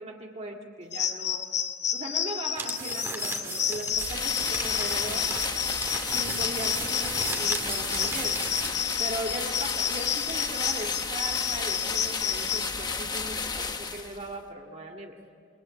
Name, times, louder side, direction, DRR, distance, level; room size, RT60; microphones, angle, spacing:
voice 1, 0.0-1.5 1.9-5.3 6.1-8.4 9.0-15.2, right 1 dB, 35° right, 0 dB, 2.0 m, -38 dB
sound 1, 0.9-12.7, left 9 dB, 55° left, 2.1 m, -31 dB
sound 2, 2.5-8.8, right 3 dB, 10° right, 2.4 m, -36 dB
sound 3, 3.9-14.3, left 4 dB, 20° left, 1.2 m, -32 dB
27.5 x 22.5 x 8.7 m, 2.3 s
head